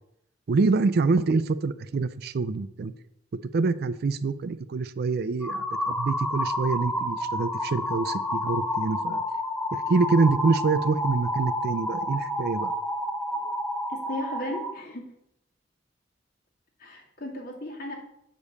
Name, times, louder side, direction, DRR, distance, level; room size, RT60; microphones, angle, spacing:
voice 1, 0.5-2.9 3.3-9.2 9.7-12.7, right 4 dB, 55° right, 15 dB, 0.4 m, -26 dB
sound 1, 5.4-14.7, left 1 dB, 5° left, 0.7 m, -30 dB
voice 2, 13.9-15.1 16.8-17.9, left 1 dB, 50° left, -2 dB, 2.3 m, -36 dB
8.3 x 5.2 x 6.5 m, 0.79 s
head